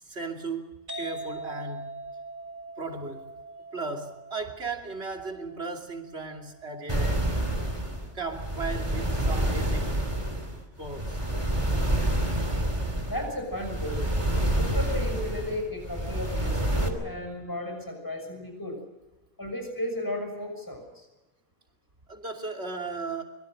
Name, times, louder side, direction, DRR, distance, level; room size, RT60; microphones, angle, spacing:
voice 1, 0.0-1.9 2.8-3.3 3.7-7.3 8.1-9.9 10.8-11.2 22.1-23.2, right 3 dB, 80° right, 2 dB, 3.2 m, -36 dB
sound 1, 0.9-8.3, right 2 dB, 50° right, 2.4 m, -43 dB
sound 2, 6.9-16.9, right 1 dB, 30° right, 3.2 m, -28 dB
voice 2, 13.1-14.0 14.6-18.8 19.4-21.1, left 1 dB, 20° left, 4 dB, 6.3 m, -34 dB
24.5 x 22.5 x 6.5 m, 1.0 s
omnidirectional pair, 1.1 m